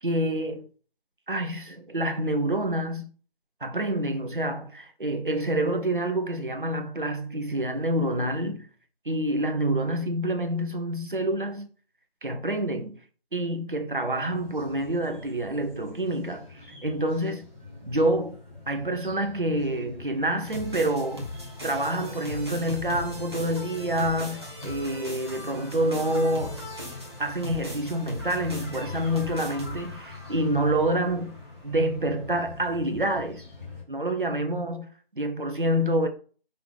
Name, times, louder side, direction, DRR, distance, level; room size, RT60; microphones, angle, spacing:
voice 1, 0.0-0.7 1.3-3.1 3.6-8.7 9.0-11.7 12.2-13.0 13.3-17.4 17.8-18.4 18.7-21.3 21.6-26.6 27.2-31.4 31.6-33.4 33.9-36.1, right 1 dB, 55° right, 1.2 m, -27 dB
sound 1, 14.1-33.8, left 4 dB, 5° left, 1.5 m, -44 dB
sound 2, 20.4-31.5, left 1 dB, 25° right, 1.4 m, -39 dB
5.7 x 3.5 x 5.7 m
figure-of-eight pair, 165°, 31 cm